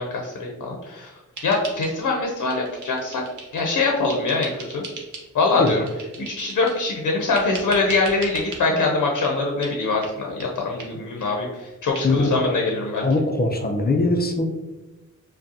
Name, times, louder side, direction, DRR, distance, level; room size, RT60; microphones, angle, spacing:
voice 1, 0.0-3.2 3.5-4.8 5.3-5.8 6.3-13.0, left 3 dB, 80° left, 0 dB, 0.7 m, -23 dB
sound 1, 1.4-2.2 2.5-3.7 4.1-5.3 5.7-6.8 7.3-8.6 9.2-9.4 9.6-9.7 10.0-10.1 10.4-10.5 10.8-10.9 11.2-11.3 11.6-11.7 11.9-12.0, right 3 dB, 75° right, 0.9 m, -38 dB
voice 2, 12.0-12.4 13.0-14.4, left 2 dB, 30° left, 3 dB, 0.5 m, -21 dB
5.1 x 2.2 x 2.7 m, 1.1 s
wide cardioid pair, 100°, 31 cm